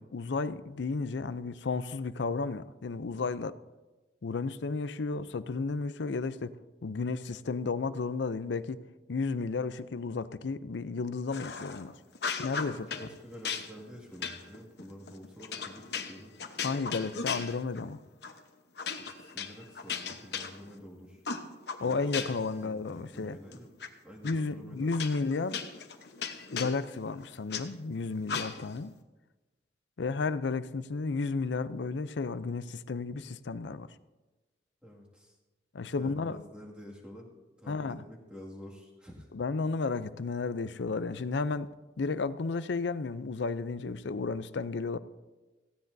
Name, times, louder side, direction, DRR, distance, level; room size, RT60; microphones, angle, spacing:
voice 1, 0.0-3.6 4.2-6.6 6.8-8.8 9.1-11.9 12.4-12.9 16.6-18.0 21.8-23.4 24.2-25.6 26.5-28.9 30.0-33.9 35.7-36.4 37.7-38.0 39.3-41.7 42.0-45.0, left 4 dB, 85° left, 15 dB, 0.5 m, -33 dB
sound 1, 11.3-11.8 12.1-13.1 13.4-17.9 18.2-18.4 18.8-20.9 21.2-22.5 22.9-23.9 24.2-24.3 24.9-27.6 28.3-28.8, left 6 dB, 70° left, 1.0 m, -37 dB
voice 2, 12.7-16.4 18.8-21.2 21.8-22.3 22.6-23.7 24.0-25.0 34.8-35.4 36.0-37.3 37.6-39.3, equal, 5° right, -3 dB, 2.1 m, -49 dB
17.5 x 15.5 x 2.7 m, 1.2 s
head